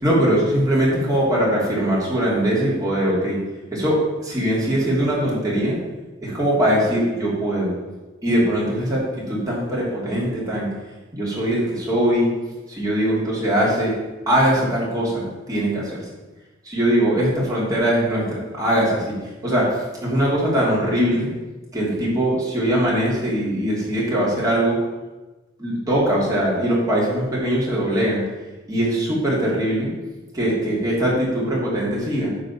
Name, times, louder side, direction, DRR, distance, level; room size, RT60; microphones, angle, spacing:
voice 1, 0.0-3.4 3.7-5.8 6.2-7.8 8.2-9.0 9.3-10.7 11.1-12.3 12.7-13.9 14.3-16.0 16.6-21.3 21.7-24.8 25.6-28.2 28.7-29.9 30.3-32.3, right 1 dB, 20° right, -6 dB, 2.9 m, -21 dB
9.6 x 3.9 x 7.3 m, 1.2 s
head